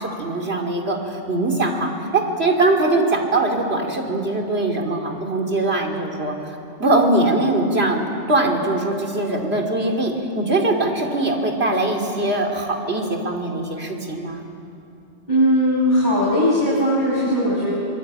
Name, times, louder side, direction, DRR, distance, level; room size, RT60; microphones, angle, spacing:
voice 1, 0.0-6.3 6.8-14.5, right 2 dB, 60° right, 1 dB, 3.1 m, -21 dB
voice 2, 15.3-17.9, equal, 40° left, -7 dB, 6.2 m, -19 dB
24.5 x 22.0 x 8.8 m, 2.7 s
omnidirectional pair, 1.2 m